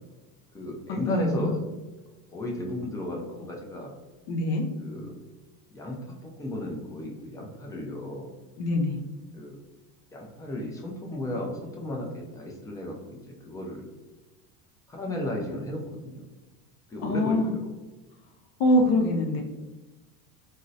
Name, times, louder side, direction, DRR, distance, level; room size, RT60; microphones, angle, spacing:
voice 1, 0.5-1.6 2.3-3.9 4.8-5.1 5.7-8.3 9.3-9.6 10.1-13.8 14.9-16.3 16.9-17.6, left 1 dB, 10° left, -1 dB, 0.3 m, -34 dB
voice 2, 1.1-1.5 4.3-4.6 8.6-9.0 17.0-17.5 18.6-19.4, left 1 dB, 60° left, 1 dB, 0.6 m, -24 dB
3.6 x 2.1 x 2.6 m, 1.2 s
supercardioid pair, 115°, 47 cm